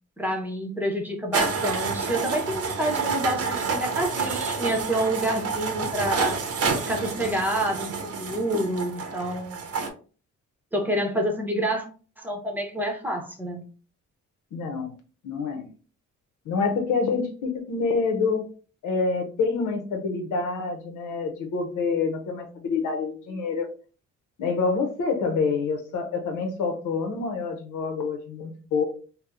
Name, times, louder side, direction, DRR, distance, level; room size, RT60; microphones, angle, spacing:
voice 1, 0.2-6.4 6.9-9.7 10.7-11.9 12.2-13.6, right 1 dB, 5° right, 1 dB, 0.9 m, -28 dB
sound 1, 1.3-9.9, right 5 dB, 50° right, 0.7 m, -28 dB
voice 2, 14.5-14.9 15.2-15.7 16.4-18.4 18.8-23.7 24.4-28.9, left 4 dB, 85° left, 5 dB, 0.9 m, -27 dB
2.8 x 2.2 x 3.5 m, 0.37 s
cardioid pair, 90°, 30 cm